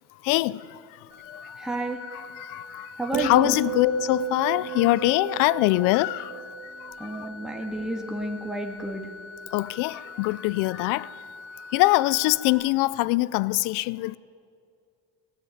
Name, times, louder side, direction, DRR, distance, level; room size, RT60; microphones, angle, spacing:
voice 1, 0.2-1.0 1.3-1.7 2.1-6.4 6.8-7.3 9.5-11.1 11.7-14.2, left 20 dB, 85° left, 0.5 m, -24 dB
sound 1, 1.1-12.5, left 3 dB, 25° left, 7.5 m, -44 dB
voice 2, 1.6-2.0 3.0-3.6 7.0-9.1, right 1 dB, ahead, 1.9 m, -31 dB
sound 2, 3.1-7.5 7.8-8.2, right 7 dB, 60° right, 2.3 m, -34 dB
18.0 x 17.5 x 9.3 m
cardioid pair, 120°, 31 cm